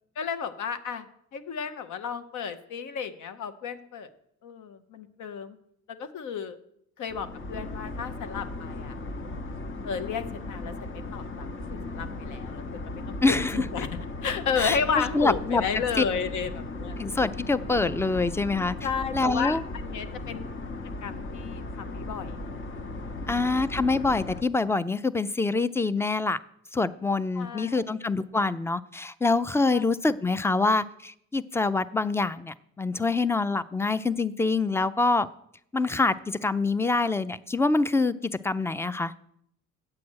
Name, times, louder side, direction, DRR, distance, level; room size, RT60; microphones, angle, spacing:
voice 1, 0.2-1.1 1.3-4.1 4.4-5.6 5.9-6.6 7.0-9.0 9.2-9.5 9.8-13.2 13.5-13.9 14.2-17.0 18.8-20.4 21.0-22.5 23.1-23.4 27.3-27.9 29.7-29.9, left 6 dB, 80° left, 10 dB, 0.9 m, -33 dB
sound 1, 7.1-24.4, left 2 dB, 40° left, 0.9 m, -37 dB
voice 2, 13.2-13.6 14.6-14.8 15.1-15.6 16.0-16.1 17.0-18.7 19.1-19.6 23.3-26.4 26.7-35.3 35.7-38.1 38.4-39.1, left 3 dB, 10° left, 16 dB, 0.4 m, -25 dB
8.7 x 7.3 x 6.3 m, 0.71 s
cardioid pair, 90°, 30 cm